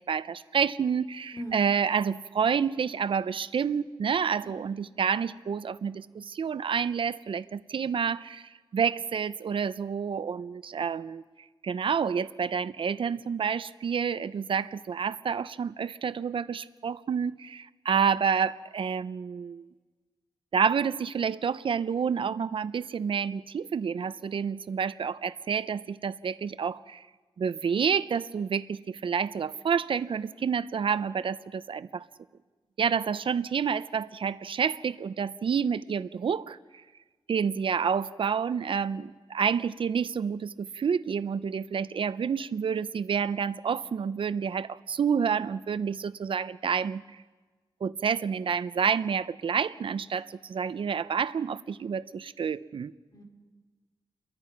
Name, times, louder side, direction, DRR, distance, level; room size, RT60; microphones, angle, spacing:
voice 1, 0.1-11.2 11.6-19.6 20.5-27.1 27.4-32.1 32.8-36.6 37.3-47.0 47.8-52.9, right 6 dB, 70° right, 15 dB, 0.6 m, -29 dB
voice 2, 1.3-1.7 4.4-4.7 53.1-53.2, right 1 dB, 40° left, 2 dB, 4.4 m, -40 dB
29.5 x 23.0 x 5.9 m, 1.3 s
wide cardioid pair, 135°, 9 cm